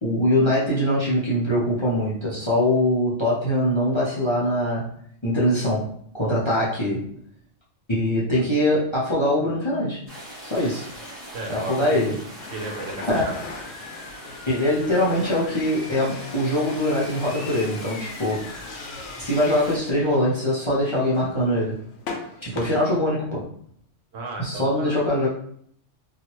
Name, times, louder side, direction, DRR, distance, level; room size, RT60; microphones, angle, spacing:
voice 1, 0.0-4.9 5.2-7.1 7.9-10.0 10.4-10.8 11.5-12.2 13.1-13.4 14.5-18.6 19.2-21.8 22.4-23.5 24.4-25.3, left 1 dB, 30° left, -8 dB, 0.5 m, -23 dB
sound 1, 10.1-19.8, equal, 35° right, 1.4 m, -42 dB
voice 2, 11.3-12.0 12.5-13.4 24.1-25.1, right 2 dB, 85° right, 1 dB, 1.1 m, -34 dB
sound 2, 12.4-22.7, left 3 dB, 65° left, 0.8 m, -39 dB
2.9 x 2.4 x 2.8 m, 0.64 s
omnidirectional pair, 1.2 m